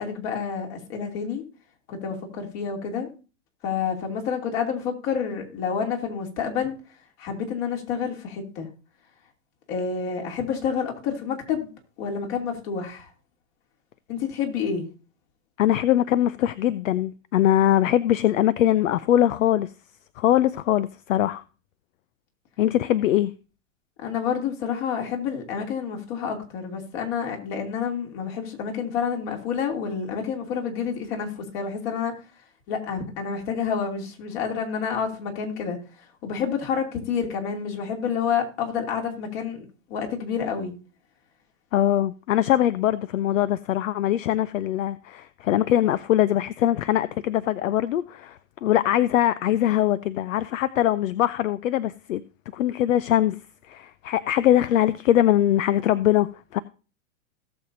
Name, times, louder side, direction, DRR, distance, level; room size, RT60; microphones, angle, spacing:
voice 1, 0.0-1.4 1.9-3.1 3.6-6.8 7.2-8.7 9.7-11.7 12.0-13.1 14.1-14.9 24.0-32.1 32.7-40.7, left 6 dB, 50° left, 3.0 m, -29 dB
voice 2, 15.6-19.7 20.2-21.4 22.6-23.3 41.7-52.2 52.5-53.4 53.6-56.6, left 12 dB, 75° left, 0.6 m, -22 dB
17.5 x 7.0 x 2.7 m
hypercardioid pair, 110°, 39 cm